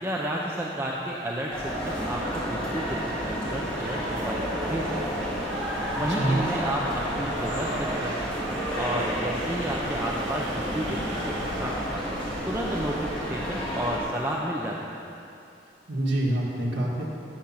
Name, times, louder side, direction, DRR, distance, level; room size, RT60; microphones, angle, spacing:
voice 1, 0.0-4.9 5.2-5.4 6.0-8.2 8.4-11.2 11.6-12.0 12.5-14.8, right 1 dB, 15° right, -3 dB, 0.6 m, -31 dB
sound 1, 1.5-14.0, equal, 5° left, 2.1 m, -30 dB
sound 2, 2.8-13.3, right 2 dB, 85° right, 1.1 m, -41 dB
voice 2, 5.8-6.4 15.9-17.1, right 1 dB, 70° right, -7 dB, 1.9 m, -27 dB
10.5 x 7.9 x 5.8 m, 2.7 s
head